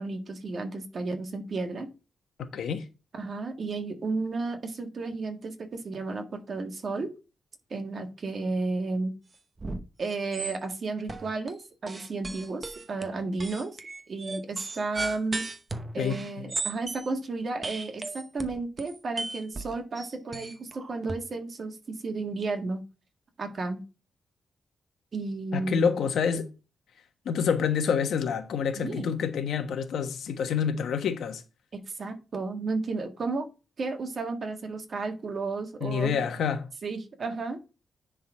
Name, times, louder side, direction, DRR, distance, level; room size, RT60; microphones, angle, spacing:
voice 1, 0.0-1.9 3.1-7.1 7.7-9.1 10.0-13.7 14.1-15.4 15.9-22.8 23.4-23.8 25.1-26.0 28.8-29.1 31.7-33.5 33.8-36.1 36.8-37.6, right 3 dB, 45° right, 1.6 m, -33 dB
voice 2, 2.4-2.8 16.0-16.2 25.5-26.5 27.2-31.4 35.8-36.7, left 7 dB, 90° left, 1.2 m, -27 dB
sound 1, 9.6-9.8 10.1-10.7 11.1-11.5 11.9-17.1 17.6-21.2, right 3 dB, 25° right, 0.8 m, -36 dB
10.0 x 3.8 x 4.6 m
wide cardioid pair, 145°, 0 cm